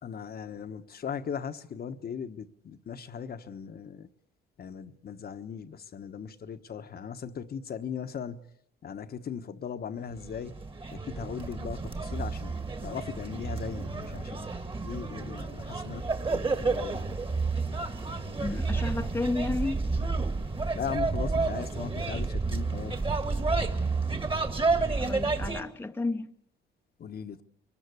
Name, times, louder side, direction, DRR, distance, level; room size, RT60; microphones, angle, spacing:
voice 1, 0.0-4.1 4.6-8.5 8.8-10.6 10.9-12.5 12.8-14.5 14.8-17.0 20.7-23.0 27.0-27.4, left 7 dB, 50° left, 1.2 m, -38 dB
sound 1, 10.2-25.6, right 3 dB, 25° right, 2.0 m, -30 dB
voice 2, 18.4-19.9 25.0-26.3, left 2 dB, 10° left, 0.9 m, -32 dB
23.5 x 20.0 x 8.3 m
cardioid pair, 90°, 20 cm